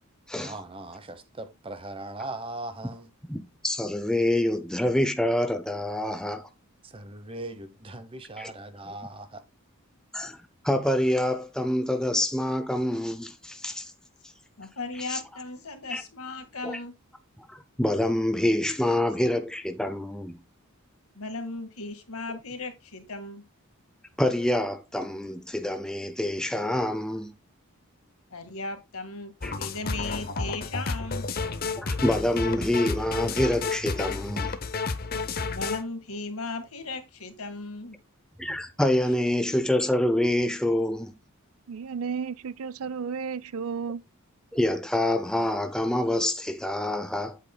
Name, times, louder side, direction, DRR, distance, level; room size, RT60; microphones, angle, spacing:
voice 1, 0.3-3.1 6.8-9.4, right 2 dB, 25° right, 0.9 m, -39 dB
voice 2, 3.3-6.5 8.4-8.5 10.1-10.4 10.6-13.9 14.2-14.3 14.9-15.2 15.9-16.0 16.6-16.8 17.5-20.4 24.2-27.3 29.4-29.5 31.7-34.6 38.4-41.1 44.5-47.4, left 1 dB, 5° left, 0.5 m, -26 dB
voice 3, 14.6-16.9 21.2-23.4 28.3-31.2 35.4-38.0, left 3 dB, 70° left, 1.8 m, -36 dB
sound 1, 29.4-35.8, left 4 dB, 40° left, 0.7 m, -31 dB
voice 4, 41.7-44.0, right 6 dB, 75° right, 0.5 m, -33 dB
9.2 x 8.3 x 2.2 m
head